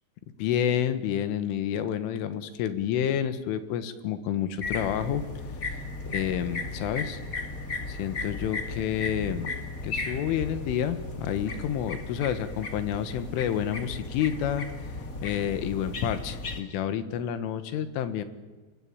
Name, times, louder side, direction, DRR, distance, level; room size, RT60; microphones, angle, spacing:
voice 1, 0.4-5.2 6.1-7.2 7.9-9.5 9.8-14.7 15.2-18.3, left 9 dB, 85° left, 11 dB, 4.1 m, -29 dB
sound 1, 4.6-16.6, left 3 dB, 40° left, 1.2 m, -36 dB
26.0 x 21.5 x 8.7 m, 1.3 s
omnidirectional pair, 5.5 m